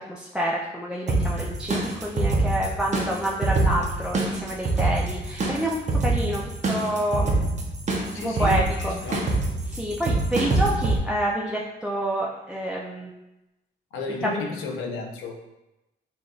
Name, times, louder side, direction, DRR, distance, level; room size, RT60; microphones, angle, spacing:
voice 1, 0.1-7.4 8.2-8.9 9.7-13.1 14.2-14.4, right 1 dB, 5° right, -3 dB, 0.5 m, -28 dB
sound 1, 1.1-11.0, right 2 dB, 35° right, 0.8 m, -25 dB
voice 2, 8.1-9.4 13.9-15.4, left 3 dB, 85° left, 1 dB, 0.8 m, -33 dB
5.7 x 2.6 x 2.4 m, 0.95 s
cardioid pair, 90°, 20 cm